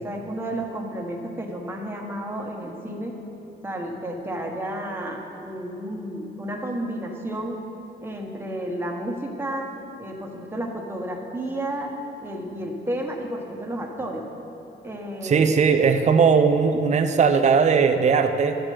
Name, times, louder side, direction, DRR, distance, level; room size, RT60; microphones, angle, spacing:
voice 1, 0.0-3.1 3.6-7.6 8.0-9.7 10.0-11.9 12.2-14.2 14.8-15.6, right 1 dB, 10° right, 0 dB, 1.3 m, -31 dB
voice 2, 15.2-18.5, right 5 dB, 35° right, 7 dB, 0.6 m, -18 dB
12.0 x 7.5 x 5.0 m, 2.8 s
cardioid pair, 90°, 20 cm